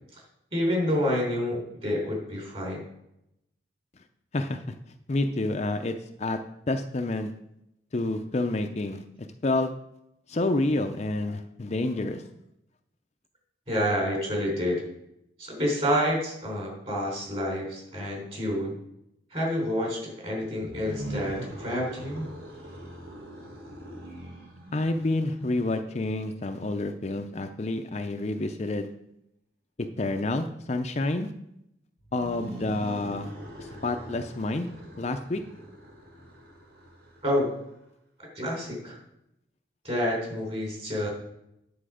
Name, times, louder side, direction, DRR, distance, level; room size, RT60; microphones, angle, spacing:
voice 1, 0.5-2.8 13.7-14.8 15.4-18.7 19.3-22.3 37.2-37.5 38.4-39.0 39.8-41.1, equal, 35° right, 0 dB, 3.7 m, -28 dB
voice 2, 5.1-6.4 6.7-7.3 7.9-9.0 9.4-9.7 10.3-12.2 24.7-28.9 30.0-31.3 32.1-33.3 33.6-34.7 35.0-35.4, left 2 dB, 35° left, 6 dB, 0.5 m, -28 dB
sound 1, 20.6-25.8 32.0-37.7, right 1 dB, 55° right, 2.2 m, -42 dB
9.8 x 6.9 x 5.0 m, 0.81 s
head